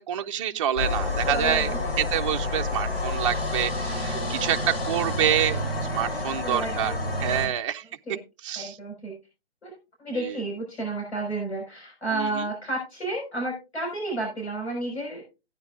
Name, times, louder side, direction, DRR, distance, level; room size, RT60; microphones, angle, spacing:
voice 1, 0.0-1.7 2.0-5.6 5.9-7.8 8.4-8.8 12.2-12.3, right 10 dB, 30° right, 5 dB, 0.4 m, -27 dB
sound 1, 0.8-7.5, left 2 dB, 65° left, 6.7 m, -29 dB
voice 2, 1.3-1.8 6.2-7.0 7.4-7.5 8.1-8.2 8.6-9.1 9.6-9.7 10.0-15.2, right 2 dB, 80° left, 0 dB, 5.7 m, -31 dB
16.0 x 9.6 x 2.5 m, 0.27 s
hypercardioid pair, 140°, 32 cm